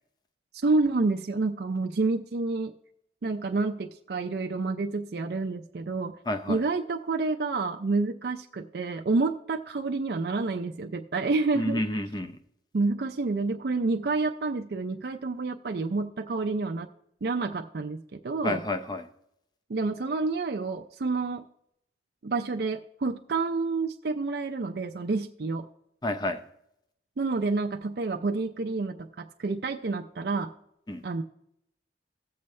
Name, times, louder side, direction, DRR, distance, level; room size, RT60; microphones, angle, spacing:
voice 1, 0.6-2.7 3.2-6.2 6.5-11.8 12.7-16.9 17.2-18.6 19.7-21.5 22.2-25.6 27.2-30.5 31.0-31.2, right 3 dB, 60° right, 5 dB, 0.5 m, -29 dB
voice 2, 6.3-6.6 11.5-12.4 18.4-19.1 26.0-26.4 30.9-31.0, left 1 dB, 25° left, 9 dB, 0.6 m, -30 dB
16.5 x 6.9 x 3.2 m, 0.77 s
head